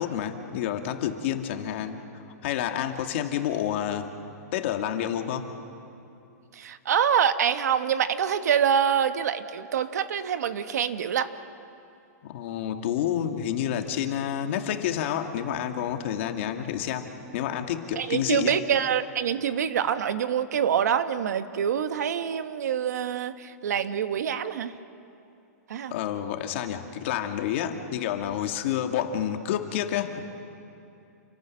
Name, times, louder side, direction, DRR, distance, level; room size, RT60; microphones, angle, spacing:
voice 1, 0.0-2.0 2.4-4.1 4.5-5.5 12.2-18.6 25.9-30.2, left 10 dB, 45° left, 5 dB, 1.9 m, -29 dB
voice 2, 6.5-11.3 18.0-24.7 25.7-25.9, right 8 dB, 75° right, 10 dB, 1.4 m, -25 dB
28.5 x 23.5 x 6.4 m, 2.7 s
hypercardioid pair, 165°, 9 cm